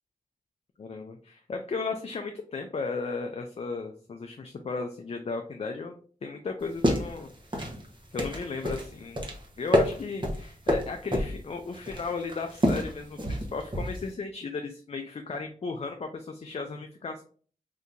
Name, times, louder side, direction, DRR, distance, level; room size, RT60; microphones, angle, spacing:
voice 1, 0.8-7.3 8.1-9.2 9.6-17.2, left 4 dB, 45° left, 5 dB, 0.4 m, -35 dB
sound 1, 6.6-14.1, equal, 30° right, 0.9 m, -29 dB
2.8 x 2.6 x 3.5 m, 0.43 s
wide cardioid pair, 80°, 15 cm